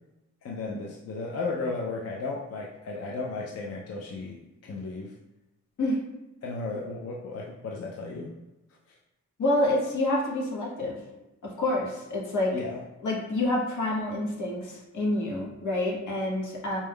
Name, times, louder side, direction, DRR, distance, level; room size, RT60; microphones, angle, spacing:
voice 1, 0.4-5.1 6.4-8.3 8.9-9.0 12.5-12.8, left 3 dB, 55° left, -2 dB, 0.4 m, -34 dB
voice 2, 9.4-11.0 11.4-12.6 13.0-16.8, left 1 dB, 75° left, -3 dB, 1.1 m, -27 dB
4.2 x 2.3 x 3.4 m, 0.99 s
wide cardioid pair, 180°, 30 cm